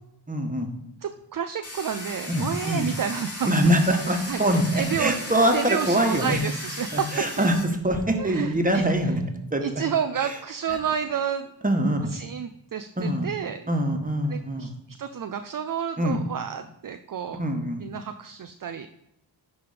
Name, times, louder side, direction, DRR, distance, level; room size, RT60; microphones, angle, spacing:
voice 1, 0.3-0.7 2.3-2.9 3.4-6.4 6.9-9.2 9.5-9.6 10.2-10.4 10.7-10.8 11.6-12.1 13.0-13.3 13.7-14.7 16.0-16.2 17.4-17.9, right 1 dB, 20° right, 4 dB, 1.4 m, -24 dB
voice 2, 1.0-3.5 4.3-4.4 4.8-5.1 5.5-7.1 7.4-7.5 8.2-8.8 9.6-11.5 12.1-13.6 14.3-14.7 15.0-17.4 17.8-18.9, right 7 dB, 45° right, 8 dB, 0.5 m, -30 dB
Domestic sounds home sounds, 1.6-7.6, left 1 dB, 30° left, 2.6 m, -37 dB
10.5 x 3.5 x 5.1 m, 0.81 s
cardioid pair, 55°, 45 cm